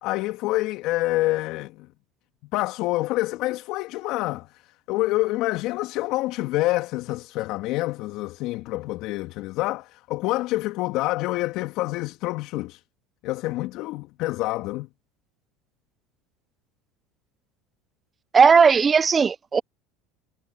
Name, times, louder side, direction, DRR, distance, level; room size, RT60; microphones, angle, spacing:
voice 1, 0.0-1.9 2.5-4.5 4.9-12.8 13.2-14.9, left 19 dB, 60° left, 2.7 m, -27 dB
voice 2, 18.3-19.6, right 6 dB, 30° right, 0.6 m, -16 dB
hypercardioid pair, 85°, 0 cm